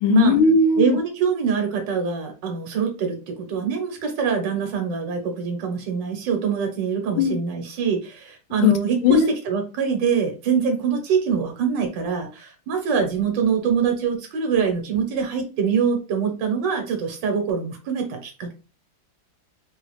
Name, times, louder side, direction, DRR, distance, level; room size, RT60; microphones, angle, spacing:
voice 1, 0.0-1.0 7.2-7.4 8.6-8.7 9.0-9.3, left 5 dB, 85° left, 9 dB, 1.4 m, -17 dB
voice 2, 0.8-18.5, right 6 dB, 65° right, 4 dB, 1.6 m, -24 dB
4.1 x 2.3 x 3.2 m, 0.32 s
omnidirectional pair, 2.2 m